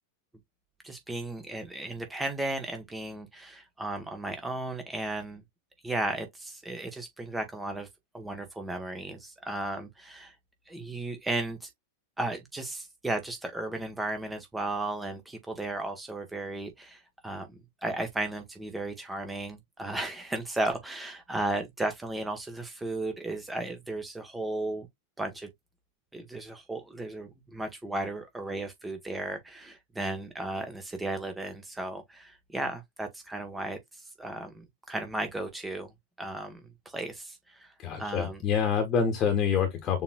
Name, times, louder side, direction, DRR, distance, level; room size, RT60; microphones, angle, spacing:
voice 1, 0.8-5.4 5.8-7.9 8.1-10.4 10.7-11.7 12.2-17.5 17.8-24.9 25.2-25.5 26.1-35.9 36.2-38.4 39.0-39.1, right 2 dB, 10° right, 1.0 m, -35 dB
voice 2, 37.8-40.0, left 7 dB, 35° left, 1.2 m, -26 dB
6.9 x 2.9 x 2.2 m
figure-of-eight pair, 90°, 0 cm